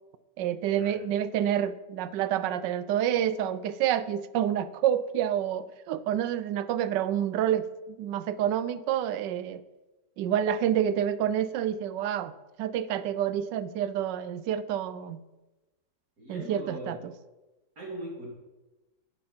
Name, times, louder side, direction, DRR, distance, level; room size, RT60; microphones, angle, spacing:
voice 1, 0.4-9.6 10.2-15.2 16.3-17.0, right 10 dB, 90° right, 14 dB, 1.3 m, -28 dB
voice 2, 16.2-17.0 17.8-18.3, right 1 dB, 55° right, -3 dB, 3.4 m, -39 dB
11.0 x 7.6 x 4.4 m, 1.1 s
omnidirectional pair, 1.8 m